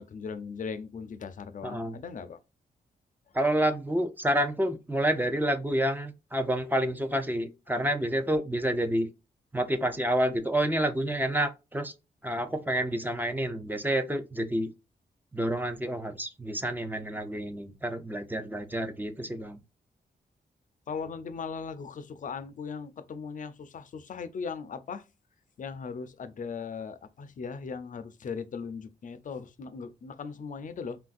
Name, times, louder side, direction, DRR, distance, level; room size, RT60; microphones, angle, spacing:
voice 1, 0.0-2.4 3.3-3.4 20.9-25.1 25.6-31.0, left 5 dB, 55° left, 0.5 m, -38 dB
voice 2, 1.6-1.9 3.3-9.1 9.5-11.9 12.2-14.7 15.3-19.6, right 1 dB, 10° right, 0.5 m, -29 dB
3.3 x 2.5 x 2.3 m
cardioid pair, 85°, 16 cm